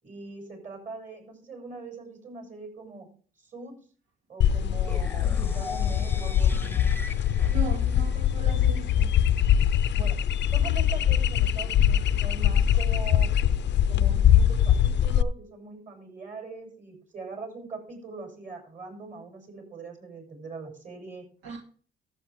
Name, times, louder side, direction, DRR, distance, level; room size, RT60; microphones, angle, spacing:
voice 1, 0.0-3.1 3.4-3.8 4.3-6.9 10.0-10.2 10.5-13.3 13.9-21.3, right 3 dB, 40° right, 7.0 m, -41 dB
sound 1, 4.4-15.2, left 10 dB, 65° left, 0.6 m, -23 dB
sound 2, 4.8-8.8, left 3 dB, 10° left, 0.9 m, -41 dB
voice 2, 7.5-9.1 21.4-21.6, right 3 dB, 85° right, 2.1 m, -37 dB
14.0 x 8.4 x 3.6 m
cardioid pair, 90°, 20 cm